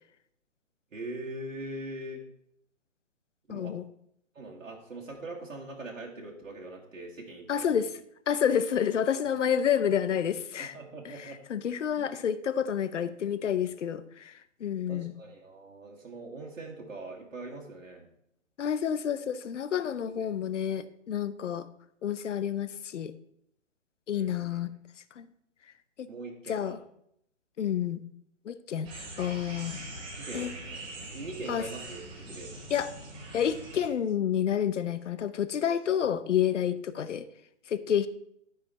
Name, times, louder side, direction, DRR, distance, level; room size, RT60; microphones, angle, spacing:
voice 1, 0.9-2.2 3.5-3.8 4.4-7.9 10.6-11.4 11.9-12.1 14.9-18.1 20.1-20.3 24.1-24.6 26.1-26.8 30.2-30.8 31.1-32.5, right 2 dB, 80° right, -2 dB, 1.9 m, -42 dB
voice 2, 3.5-3.8 7.5-8.0 8.3-10.8 11.0-15.1 18.6-21.7 22.0-23.1 24.1-24.7 25.2-25.3 26.0-26.1 26.5-26.8 27.6-28.0 28.5-29.8 30.3-30.5 31.5-31.7 32.7-32.9 33.3-37.3 37.7-38.1, left 9 dB, 70° left, 14 dB, 0.7 m, -29 dB
sound 1, 28.8-33.9, right 2 dB, 15° right, 0.9 m, -42 dB
12.5 x 5.1 x 4.1 m, 0.73 s
hypercardioid pair, 150°, 38 cm